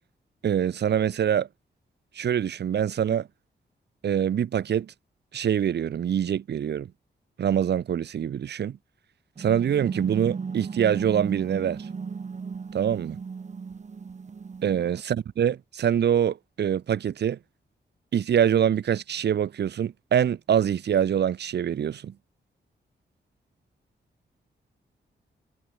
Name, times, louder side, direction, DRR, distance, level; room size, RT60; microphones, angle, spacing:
voice 1, 0.4-1.5 2.1-3.3 4.0-4.9 5.3-6.9 7.4-8.8 9.4-11.9 12.7-13.2 14.6-17.4 18.1-22.1, right 9 dB, 65° right, 0.9 m, -25 dB
sound 1, 9.4-15.0, right 5 dB, 40° right, 1.4 m, -35 dB
wide cardioid pair, 105°, 18 cm